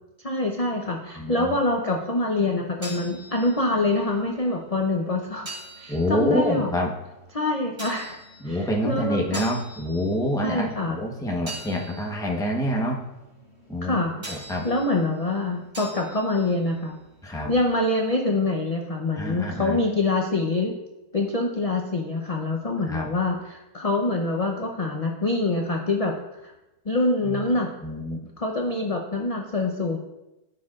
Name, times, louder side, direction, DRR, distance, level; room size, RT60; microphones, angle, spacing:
voice 1, 0.2-5.5 5.8-6.7 7.3-8.2 8.4-9.4 10.4-11.0 13.8-14.1 14.6-17.0 17.5-20.7 21.1-26.5 26.9-27.7 28.4-30.0, left 2 dB, 40° left, 1 dB, 0.5 m, -25 dB
voice 2, 1.1-1.6 5.9-6.9 8.4-13.0 13.7-14.0 14.3-14.7 17.2-17.5 19.2-19.8 22.9-23.1 27.2-27.4 27.8-28.2, equal, 5° left, -1 dB, 0.7 m, -27 dB
sound 1, 2.4-17.9, right 1 dB, 40° right, 3.6 m, -44 dB
14.0 x 6.5 x 2.5 m, 0.96 s
omnidirectional pair, 1.7 m